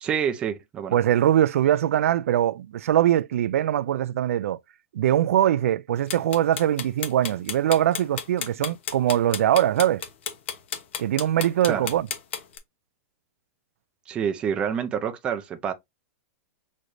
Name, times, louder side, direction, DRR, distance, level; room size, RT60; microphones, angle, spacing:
voice 1, 0.0-1.0 11.7-11.9 14.1-15.7, right 8 dB, 15° right, 0.5 m, -27 dB
voice 2, 0.9-4.6 4.9-10.0 11.0-12.1, right 11 dB, 80° right, 0.4 m, -22 dB
sound 1, 6.1-12.6, left 8 dB, 55° left, 1.1 m, -32 dB
6.2 x 3.1 x 2.6 m
supercardioid pair, 175°, 8 cm